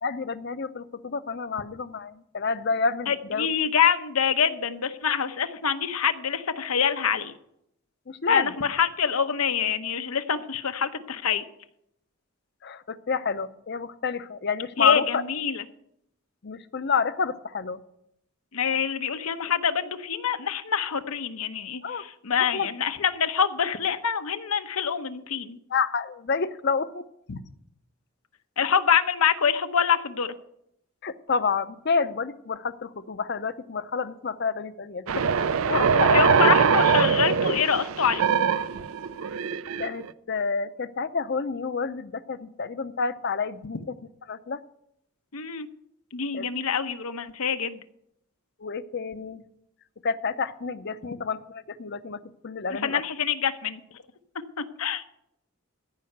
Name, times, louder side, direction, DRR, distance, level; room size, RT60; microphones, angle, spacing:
voice 1, 0.0-3.5 8.1-8.5 12.6-15.2 16.4-17.8 21.8-22.1 22.4-22.7 25.7-27.0 31.0-35.3 35.6-36.2 39.8-43.9 44.3-44.6 46.3-46.5 48.6-49.4 50.0-53.0, left 5 dB, 50° left, 13 dB, 0.6 m, -29 dB
voice 2, 3.1-7.3 8.3-11.4 14.8-15.6 18.5-25.6 27.3-27.4 28.6-30.3 36.1-38.2 45.3-45.7 46.1-47.8 52.7-53.8 54.8-55.0, left 7 dB, 90° left, 9 dB, 0.9 m, -25 dB
sound 1, 35.1-40.1, right 6 dB, 75° right, 0.5 m, -22 dB
14.5 x 5.6 x 7.9 m, 0.77 s
head